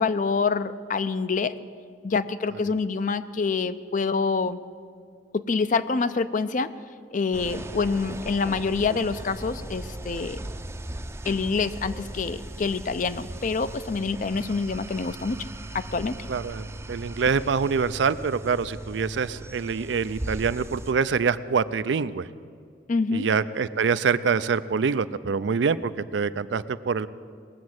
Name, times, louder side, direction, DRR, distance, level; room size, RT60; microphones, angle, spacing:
voice 1, 0.0-1.5 2.0-4.6 5.3-6.7 7.1-10.4 11.3-15.4 15.7-16.2 22.9-23.3, left 4 dB, 45° left, 13 dB, 0.5 m, -26 dB
sound 1, 7.3-20.9, right 1 dB, 15° right, 0.5 m, -38 dB
voice 2, 16.3-22.3 23.1-27.1, right 5 dB, 75° right, 15 dB, 0.4 m, -25 dB
19.5 x 7.3 x 7.8 m, 2.2 s
head